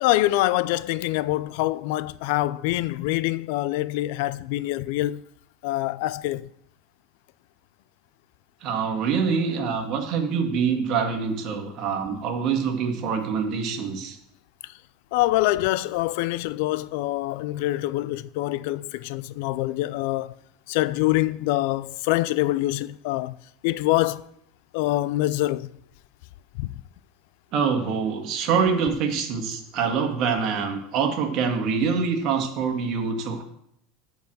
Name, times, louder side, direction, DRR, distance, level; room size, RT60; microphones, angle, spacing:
voice 1, 0.0-5.2 5.6-6.5 15.1-20.3 20.7-23.3 23.6-24.2 24.7-25.7 26.6-26.7, left 17 dB, 70° left, 0.4 m, -25 dB
voice 2, 8.6-14.2 27.5-33.4, right 6 dB, 50° right, 1.8 m, -25 dB
9.4 x 4.7 x 7.7 m
supercardioid pair, 140°, 0 cm